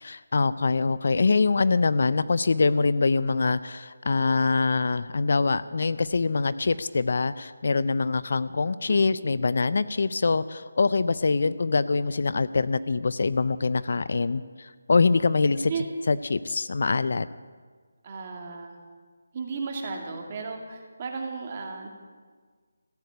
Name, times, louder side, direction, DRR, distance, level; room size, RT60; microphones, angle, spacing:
voice 1, 0.0-15.7 16.1-17.3, left 4 dB, 60° left, 16 dB, 0.5 m, -24 dB
voice 2, 8.9-9.3 15.7-15.8 18.0-18.8 19.3-21.9, right 5 dB, 30° right, 2 dB, 2.3 m, -35 dB
15.0 x 8.5 x 9.2 m, 1.5 s
figure-of-eight pair, 165°, 0 cm